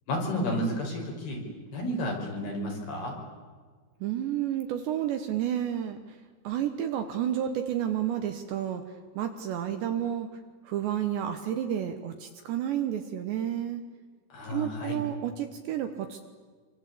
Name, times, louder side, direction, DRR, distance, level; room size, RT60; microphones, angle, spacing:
voice 1, 0.1-1.4 1.7-3.2 14.3-15.0, equal, 50° left, 1 dB, 7.1 m, -31 dB
voice 2, 4.0-6.0 6.4-8.8 9.1-10.4 10.6-13.8 14.5-16.2, right 10 dB, 70° right, 7 dB, 3.0 m, -30 dB
27.0 x 25.0 x 8.5 m, 1.5 s
omnidirectional pair, 6.0 m